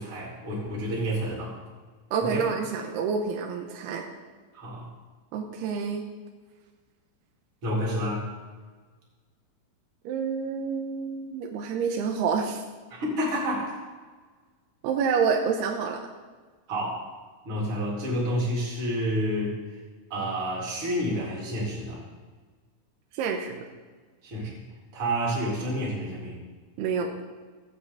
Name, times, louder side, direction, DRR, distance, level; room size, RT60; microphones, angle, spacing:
voice 1, 0.0-1.5 2.2-2.4 4.5-4.9 7.6-8.3 12.9-13.8 16.7-17.0 17.4-19.6 20.1-22.0 24.2-24.5 24.9-26.4, equal, 30° right, -4 dB, 4.0 m, -29 dB
voice 2, 2.1-4.0 5.3-6.0 10.1-12.6 14.8-16.0 23.2-23.5 26.8-27.1, right 6 dB, 80° right, 2 dB, 3.0 m, -28 dB
17.0 x 5.8 x 8.4 m, 1.4 s
omnidirectional pair, 4.9 m